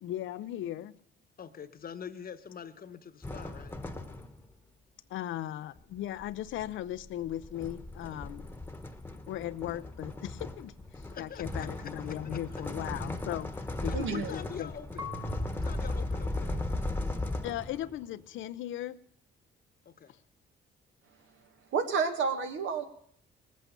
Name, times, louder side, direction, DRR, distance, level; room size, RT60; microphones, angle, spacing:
voice 1, 0.0-0.9 5.1-8.5 9.3-14.7 17.4-19.0, left 12 dB, 80° left, 14 dB, 0.6 m, -37 dB
voice 2, 1.4-3.7 11.1-12.6 13.8-15.1 15.6-16.6 19.8-20.1, left 7 dB, 50° left, 11 dB, 1.1 m, -45 dB
sound 1, 3.2-4.5 5.8-18.0, left 2 dB, 10° left, 1.2 m, -37 dB
voice 3, 13.9-14.3 21.7-22.8, right 5 dB, 75° right, 7 dB, 1.6 m, -30 dB
Marimba xylophone / Wood, 15.0-17.8, equal, 20° right, 1.0 m, -45 dB
19.0 x 8.5 x 6.7 m, 0.64 s
cardioid pair, 90°, 20 cm